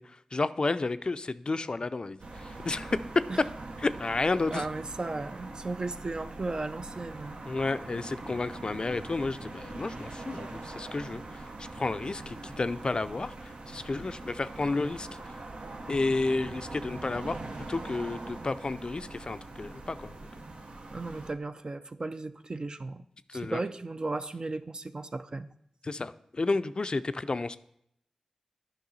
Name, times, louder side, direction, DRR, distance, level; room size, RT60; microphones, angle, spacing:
voice 1, 0.0-3.0 3.8-4.7 7.5-15.3 15.9-20.1 23.3-23.6 25.8-27.6, left 3 dB, 45° left, 13 dB, 0.4 m, -32 dB
sound 1, 2.2-21.3, right 2 dB, 70° right, 0.8 m, -42 dB
voice 2, 4.5-7.4 20.9-23.0 23.3-25.5, right 3 dB, 45° right, 10 dB, 0.4 m, -35 dB
10.0 x 5.5 x 4.0 m, 0.73 s
cardioid pair, 45°, 2 cm